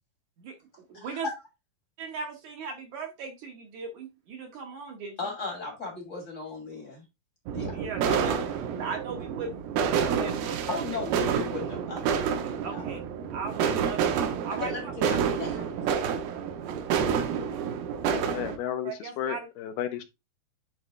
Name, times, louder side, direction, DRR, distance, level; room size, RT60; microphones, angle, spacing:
voice 1, 0.9-1.3 2.0-5.3 7.7-8.4 8.8-10.8 12.6-13.0 13.3-14.2 14.4-14.8 15.5-15.7 18.8-19.5, right 5 dB, 65° right, 2.0 m, -38 dB
voice 2, 5.2-7.0 7.5-7.8 8.1-8.4 10.7-12.2 12.7-12.8 14.6-15.6, left 4 dB, 40° left, 1.1 m, -36 dB
sound 1, 7.5-18.6, right 7 dB, 85° right, 2.8 m, -29 dB
voice 3, 18.1-20.0, left 10 dB, 90° left, 2.8 m, -33 dB
9.8 x 3.3 x 3.5 m
omnidirectional pair, 4.3 m